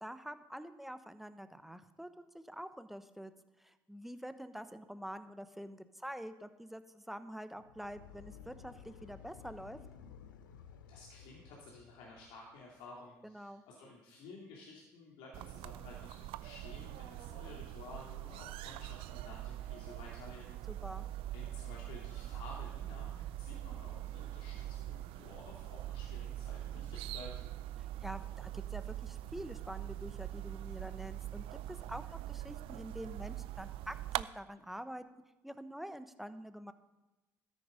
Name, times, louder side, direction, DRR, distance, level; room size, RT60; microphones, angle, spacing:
voice 1, 0.0-3.3 3.6-9.8 13.2-13.6 20.7-21.0 27.8-35.0 35.4-36.7, equal, ahead, 10 dB, 1.1 m, -46 dB
sound 1, 7.5-12.7, left 7 dB, 85° left, 0.8 m, -55 dB
voice 2, 10.9-20.6 21.3-27.3, left 3 dB, 70° left, -3 dB, 2.8 m, -53 dB
sound 2, 15.3-34.2, right 14 dB, 65° right, 0.4 m, -43 dB
13.0 x 9.7 x 5.2 m, 1.1 s
hypercardioid pair, 60°, 10 cm